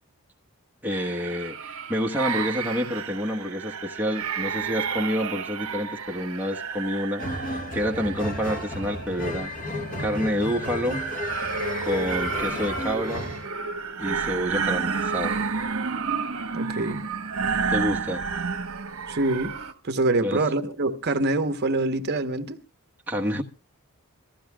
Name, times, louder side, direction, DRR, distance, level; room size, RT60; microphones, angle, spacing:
voice 1, 0.8-11.0 11.8-13.3 14.0-15.4 17.7-18.2 20.2-20.4 23.1-23.4, equal, 10° right, 1.2 m, -28 dB
sound 1, 0.9-19.7, right 5 dB, 70° right, 1.1 m, -31 dB
sound 2, 7.2-13.5, left 1 dB, 40° left, 1.3 m, -33 dB
voice 2, 16.5-17.0 19.1-19.5 19.8-22.6, right 2 dB, 50° right, 1.0 m, -25 dB
23.5 x 14.5 x 2.3 m
head